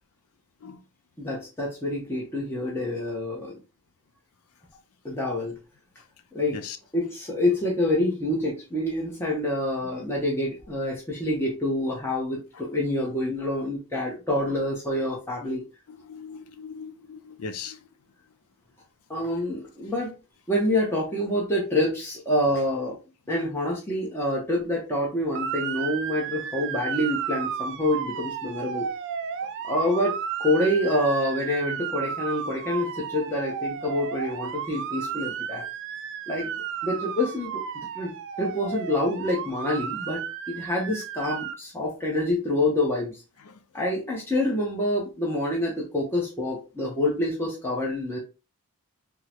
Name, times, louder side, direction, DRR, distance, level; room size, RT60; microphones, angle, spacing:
voice 1, 1.2-3.6 5.0-5.6 6.3-6.6 6.9-15.6 19.1-20.1 20.5-23.0 23.3-28.9 29.6-35.6 36.3-36.5 36.8-38.1 38.4-43.2 43.7-48.2, left 1 dB, 10° left, 0.7 m, -27 dB
voice 2, 15.9-17.9 29.4-29.5 43.4-43.6, left 5 dB, 70° left, 0.4 m, -40 dB
Motor vehicle (road) / Siren, 25.3-41.6, right 7 dB, 55° right, 0.3 m, -33 dB
3.6 x 2.0 x 2.8 m
head